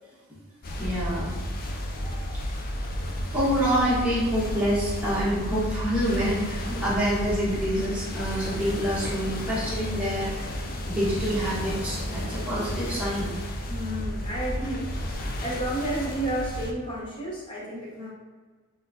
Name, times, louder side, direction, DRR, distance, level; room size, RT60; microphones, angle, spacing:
sound 1, 0.6-16.7, left 1 dB, 40° left, 0.5 m, -32 dB
voice 1, 0.7-1.3 1.8-2.4 3.3-10.3 10.8-13.3, equal, 5° right, -10 dB, 1.4 m, -27 dB
voice 2, 1.7-2.5 6.7-6.9 13.7-14.9 15.4-18.1, right 1 dB, 25° left, -5 dB, 0.9 m, -32 dB
4.2 x 3.6 x 2.7 m, 1.4 s
head